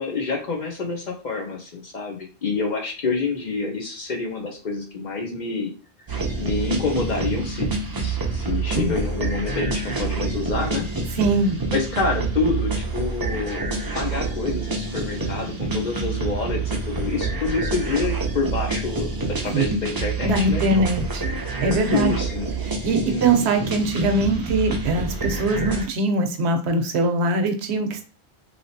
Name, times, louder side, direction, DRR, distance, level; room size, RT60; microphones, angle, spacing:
voice 1, 0.0-5.7 6.4-7.7 8.0-10.9 11.7-19.1 19.4-20.9 21.6-22.5 23.1-23.4, left 4 dB, 50° left, 2 dB, 0.6 m, -27 dB
sound 1, 6.1-25.9, right 3 dB, 30° right, 0.4 m, -27 dB
voice 2, 11.1-11.6 19.4-19.6 20.2-21.2 21.6-22.1 22.6-28.0, right 2 dB, 80° right, 5 dB, 0.9 m, -22 dB
3.1 x 2.8 x 2.7 m, 0.36 s
omnidirectional pair, 1.1 m